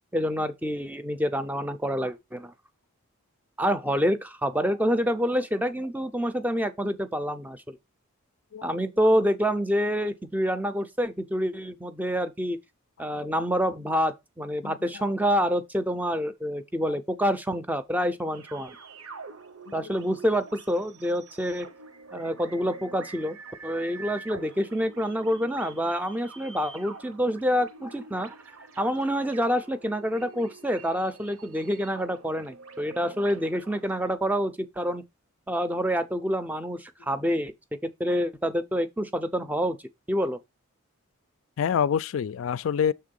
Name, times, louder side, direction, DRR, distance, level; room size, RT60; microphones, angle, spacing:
voice 1, 0.1-2.5 3.6-7.8 8.6-12.6 13.0-18.8 19.7-21.7 22.1-23.4 23.6-28.3 28.8-35.0 35.5-37.5 37.8-39.8 40.1-40.4, equal, 5° right, 0.5 m, -27 dB
sound 1, 18.3-34.1, right 4 dB, 75° right, 1.0 m, -46 dB
voice 2, 41.6-42.9, left 8 dB, 65° left, 0.3 m, -26 dB
6.6 x 3.5 x 5.3 m
head